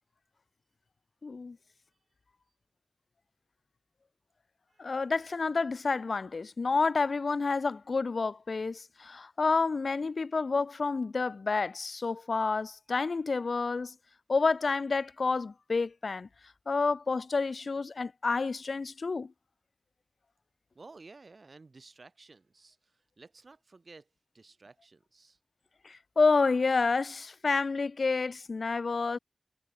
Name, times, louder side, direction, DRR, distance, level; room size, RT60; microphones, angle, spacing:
voice 1, 1.2-1.6 4.8-13.9 14.3-16.3 16.7-19.3 25.8-29.2, left 4 dB, 80° left, 0.6 m, -29 dB
voice 2, 20.7-24.1 24.3-25.4, right 3 dB, 65° right, 5.1 m, -54 dB
wide cardioid pair, 60°, 0 cm